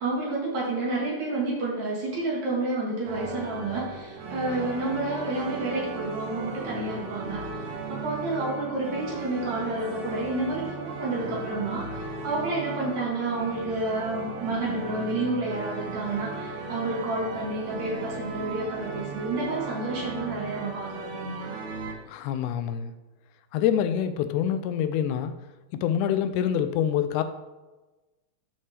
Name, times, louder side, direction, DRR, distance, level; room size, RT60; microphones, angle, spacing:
voice 1, 0.0-7.6 7.9-21.5, right 2 dB, 70° right, -5 dB, 3.1 m, -30 dB
sound 1, 3.0-21.9, right 4 dB, 85° right, 2.9 m, -37 dB
voice 2, 22.1-22.9 23.5-25.3 25.7-27.2, left 9 dB, 85° left, 10 dB, 2.0 m, -26 dB
12.0 x 4.3 x 3.4 m, 1.1 s
omnidirectional pair, 3.5 m